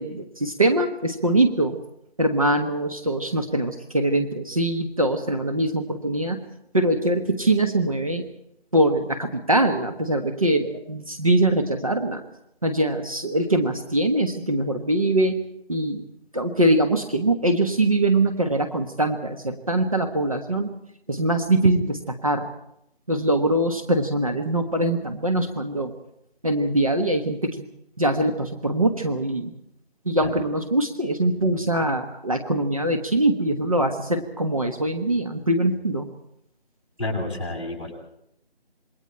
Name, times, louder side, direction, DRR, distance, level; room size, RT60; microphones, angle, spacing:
voice 1, 0.0-1.8 2.2-6.4 6.7-8.2 8.7-12.2 12.6-15.4 15.7-16.0 16.3-20.7 21.1-22.5 23.1-25.9 26.4-27.6 28.0-29.5 30.0-36.1, right 1 dB, 35° right, 5 dB, 1.3 m, -23 dB
voice 2, 37.0-37.9, left 2 dB, 30° left, -1 dB, 7.7 m, -30 dB
27.0 x 22.5 x 4.5 m, 0.78 s
figure-of-eight pair, 170°, 32 cm